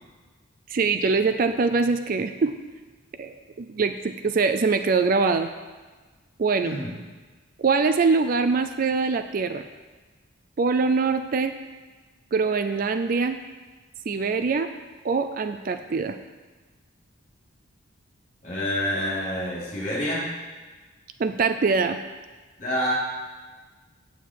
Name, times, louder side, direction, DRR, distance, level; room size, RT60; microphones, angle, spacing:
voice 1, 0.7-2.5 3.2-5.5 6.4-6.8 7.6-9.6 10.6-11.5 12.3-13.4 14.1-14.7 15.0-16.2 21.2-22.0, right 4 dB, 45° right, 9 dB, 0.4 m, -23 dB
voice 2, 6.6-6.9 18.4-20.3 22.6-22.9, equal, 35° left, -6 dB, 3.3 m, -27 dB
8.3 x 8.0 x 4.6 m, 1.3 s
head